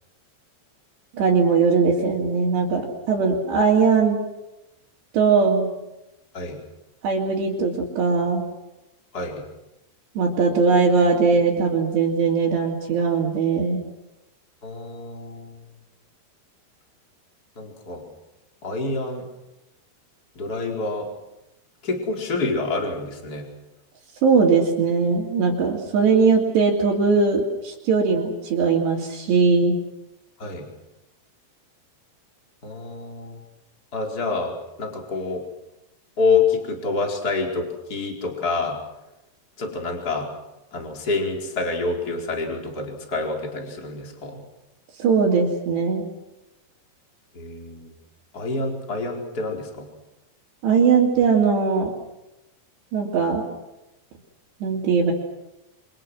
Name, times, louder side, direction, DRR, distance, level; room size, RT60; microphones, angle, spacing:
voice 1, 1.1-4.2 5.1-5.7 7.0-8.5 10.2-13.8 24.2-29.8 45.0-46.1 50.6-51.9 52.9-53.4 54.6-55.1, right 5 dB, 65° right, -4 dB, 4.9 m, -20 dB
voice 2, 14.6-15.5 17.6-18.0 18.6-19.2 20.4-21.0 21.8-23.5 30.4-30.6 32.6-33.4 33.9-34.5 34.8-35.4 36.2-38.8 39.6-40.3 40.7-44.4 47.3-47.9 48.3-49.9, left 3 dB, 20° left, 1 dB, 4.5 m, -27 dB
29.0 x 26.0 x 6.3 m, 0.95 s
omnidirectional pair, 5.4 m